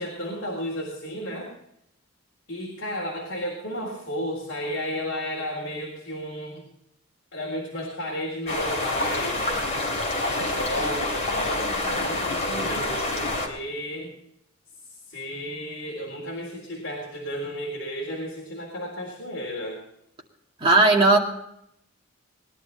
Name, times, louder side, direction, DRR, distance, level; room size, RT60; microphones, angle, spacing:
voice 1, 0.0-1.5 2.5-6.7 7.3-9.5 9.9-14.1 14.9-19.8, equal, 55° left, -2 dB, 3.9 m, -33 dB
sound 1, 8.5-13.5, left 2 dB, 30° left, 3.3 m, -27 dB
voice 2, 20.6-21.2, right 2 dB, 25° right, -1 dB, 2.2 m, -16 dB
20.5 x 11.5 x 4.2 m, 0.76 s
head